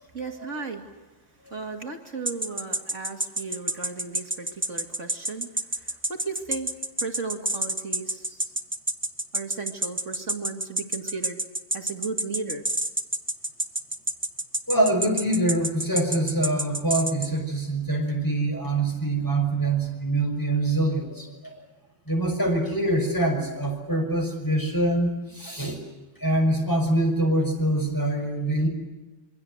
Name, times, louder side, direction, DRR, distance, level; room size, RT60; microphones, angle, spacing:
voice 1, 0.1-0.8 1.5-5.5 5.8-6.7 7.0-8.4 9.3-11.4 11.7-12.7, right 4 dB, 40° right, 3 dB, 2.7 m, -35 dB
sound 1, 2.3-17.3, right 1 dB, 5° right, 1.2 m, -28 dB
voice 2, 14.7-21.5 22.1-25.8 26.2-28.7, right 1 dB, 10° left, 3 dB, 6.1 m, -24 dB
27.5 x 23.5 x 8.1 m, 1.1 s
omnidirectional pair, 2.0 m